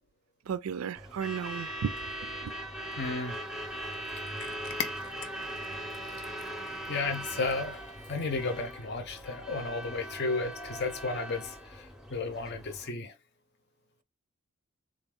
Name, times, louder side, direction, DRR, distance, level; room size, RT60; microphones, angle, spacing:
voice 1, 0.5-1.9 2.4-2.5, right 7 dB, 80° right, 0.4 m, -34 dB
Truck / Alarm, 1.0-12.9, right 1 dB, ahead, 0.5 m, -40 dB
voice 2, 3.0-3.4 6.9-7.8 8.1-11.5 12.1-13.1, left 3 dB, 50° left, 0.6 m, -33 dB
Cat, 3.5-8.7, left 6 dB, 90° left, 0.7 m, -44 dB
3.9 x 2.4 x 3.5 m
head